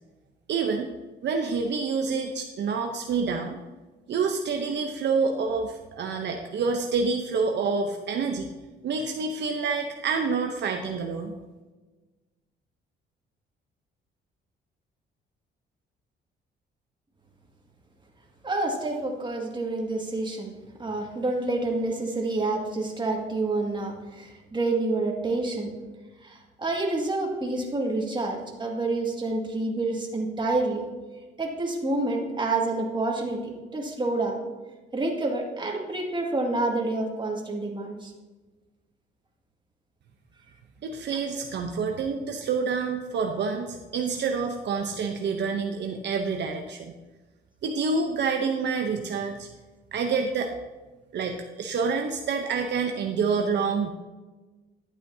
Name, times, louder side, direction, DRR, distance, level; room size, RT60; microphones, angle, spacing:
voice 1, 0.5-0.9 1.2-3.6 4.1-8.5 8.8-11.3 40.8-46.9 47.6-49.5 49.9-50.5 51.1-53.9, right 5 dB, 60° right, 3 dB, 0.8 m, -27 dB
voice 2, 18.4-20.5 20.8-25.7 26.2-30.8 31.4-33.4 33.7-34.5 34.9-38.1, right 2 dB, 25° right, 0 dB, 2.0 m, -28 dB
11.5 x 8.2 x 2.7 m, 1.2 s
cardioid pair, 90°, 20 cm